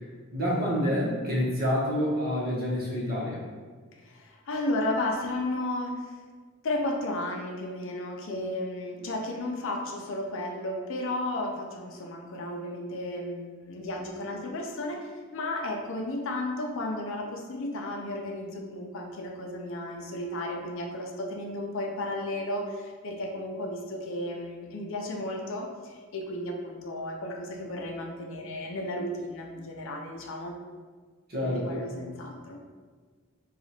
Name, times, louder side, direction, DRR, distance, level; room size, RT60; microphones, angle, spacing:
voice 1, 0.3-3.4 31.3-31.8, equal, 45° right, -6 dB, 1.1 m, -28 dB
voice 2, 4.0-6.1 6.6-30.6 31.4-32.6, left 1 dB, 65° left, 1 dB, 0.5 m, -33 dB
2.8 x 2.4 x 4.2 m, 1.5 s
head